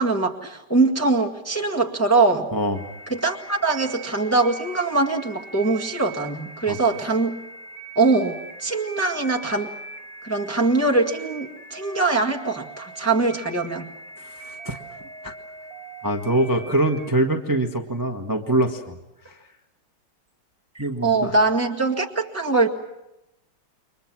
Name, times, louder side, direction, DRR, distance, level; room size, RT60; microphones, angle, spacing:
voice 1, 0.0-2.5 3.1-7.4 7.9-9.7 10.2-13.9 20.7-22.7, right 3 dB, 10° left, 2 dB, 1.3 m, -22 dB
voice 2, 2.5-2.9 6.7-6.8 14.2-14.8 15.2-15.3 16.0-19.0 19.3-19.4 20.8-21.3, right 1 dB, 10° right, 3 dB, 1.1 m, -24 dB
sound 1, 2.7-17.1, right 3 dB, 45° right, 1.3 m, -41 dB
29.0 x 24.0 x 6.1 m, 0.90 s
omnidirectional pair, 2.4 m